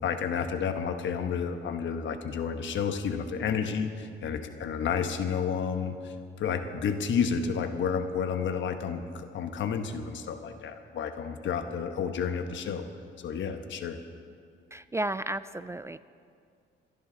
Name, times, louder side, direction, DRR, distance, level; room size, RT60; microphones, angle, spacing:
voice 1, 0.0-12.9 13.2-14.0, left 6 dB, 70° left, 8 dB, 1.1 m, -31 dB
voice 2, 14.7-16.0, right 1 dB, 15° right, 14 dB, 0.3 m, -33 dB
27.0 x 11.0 x 3.9 m, 2.3 s
cardioid pair, 90°, 20 cm